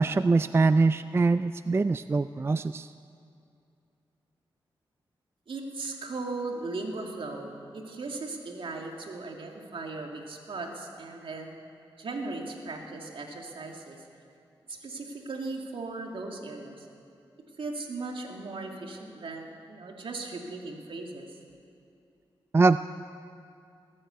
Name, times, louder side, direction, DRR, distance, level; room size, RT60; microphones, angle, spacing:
voice 1, 0.0-2.9 22.5-22.8, right 3 dB, 25° right, 13 dB, 0.3 m, -23 dB
voice 2, 5.5-11.5 12.0-14.0 14.7-16.9 17.6-21.3, right 3 dB, 65° right, 1 dB, 2.2 m, -37 dB
20.0 x 8.8 x 8.1 m, 2.5 s
cardioid pair, 60°, 9 cm